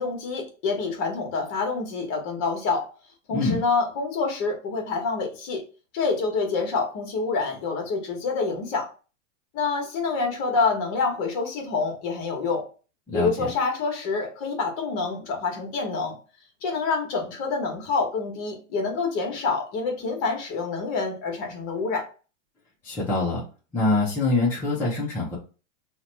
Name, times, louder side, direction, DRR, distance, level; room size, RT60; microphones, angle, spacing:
voice 1, 0.0-2.9 3.3-5.6 5.9-8.9 9.5-12.6 13.1-16.2 16.6-22.1, left 4 dB, 35° left, 2 dB, 1.1 m, -27 dB
voice 2, 3.3-3.6 13.1-13.5 22.8-23.4 23.7-25.4, left 3 dB, 5° left, -6 dB, 0.4 m, -24 dB
2.8 x 2.2 x 3.9 m, 0.35 s
supercardioid pair, 150°, 38 cm